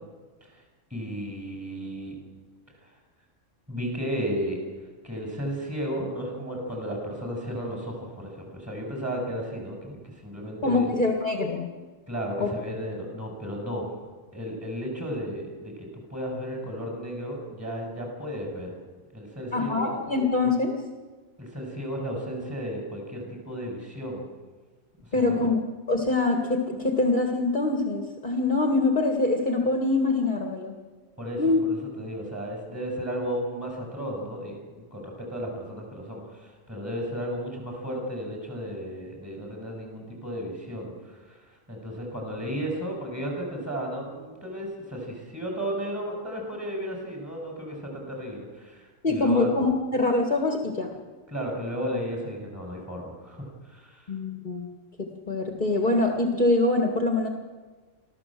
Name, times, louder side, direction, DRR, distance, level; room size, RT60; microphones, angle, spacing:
voice 1, 0.9-2.2 3.7-4.6 5.0-10.9 12.1-13.9 14.3-18.7 19.1-19.9 21.4-24.3 25.1-25.5 31.2-41.4 41.7-49.5 51.3-54.1, equal, 10° right, 0 dB, 6.9 m, -34 dB
voice 2, 10.6-11.7 12.4-12.5 19.5-20.8 25.1-25.6 25.9-30.8 31.4-31.6 49.0-51.0 54.1-54.7 55.0-57.3, left 2 dB, 40° left, 3 dB, 2.0 m, -24 dB
25.0 x 15.0 x 7.7 m, 1.4 s
omnidirectional pair, 1.3 m